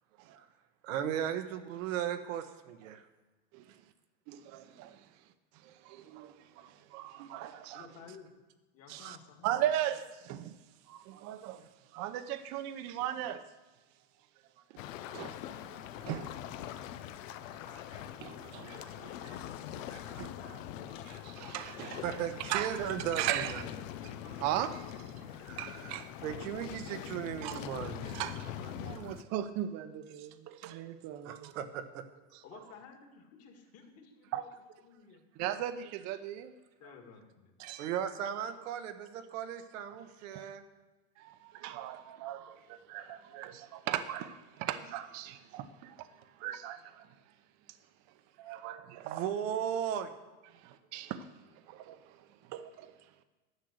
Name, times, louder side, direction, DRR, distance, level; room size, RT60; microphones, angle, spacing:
voice 1, 0.8-3.0 22.0-23.6 24.0-24.1 25.4-28.2 31.2-32.1 37.8-40.6 49.0-50.1, right 9 dB, 85° right, 8 dB, 1.2 m, -36 dB
voice 2, 4.3-5.1 5.6-7.9 8.9-9.2 9.4-10.6 10.9-13.4 15.1-15.4 15.7-16.3 17.3-17.4 17.6-19.4 19.7-20.6 20.9-22.0 22.5-22.7 23.1-23.6 24.0-25.0 25.6-26.1 27.4-27.6 28.1-31.5 32.3-32.4 34.3-34.4 35.4-36.5 37.6-37.9 40.3-40.5 41.2-46.1 46.4-47.1 48.4-49.2 50.5-51.3 51.7-52.9, right 12 dB, 45° right, 11 dB, 0.8 m, -38 dB
voice 3, 7.7-8.3 8.7-9.7 32.4-35.3 36.8-37.5, left 6 dB, 40° left, 4 dB, 1.9 m, -54 dB
sound 1, 14.8-29.2, left 10 dB, 90° left, 0.8 m, -43 dB
11.5 x 6.3 x 8.0 m, 1.2 s
supercardioid pair, 150°, 38 cm